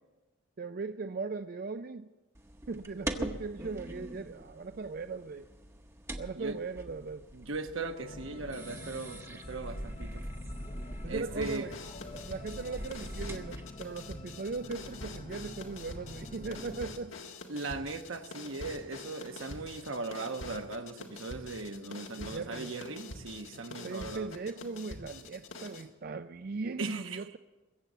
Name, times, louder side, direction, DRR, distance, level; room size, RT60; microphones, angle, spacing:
voice 1, 0.6-2.1 2.7-5.5 6.2-7.3 11.0-11.8 12.1-17.1 22.1-22.7 23.6-27.4, right 4 dB, 50° right, 10 dB, 0.4 m, -39 dB
sound 1, 2.3-13.8, right 1 dB, 15° right, 0.9 m, -43 dB
voice 2, 7.0-10.3 11.1-11.7 17.5-24.3 26.8-27.2, right 3 dB, 80° right, 6 dB, 1.1 m, -39 dB
sound 2, 8.0-16.8, left 2 dB, 30° left, 0.6 m, -47 dB
sound 3, 11.4-25.9, left 3 dB, 85° left, 1.7 m, -46 dB
21.5 x 8.1 x 7.4 m, 1.2 s
head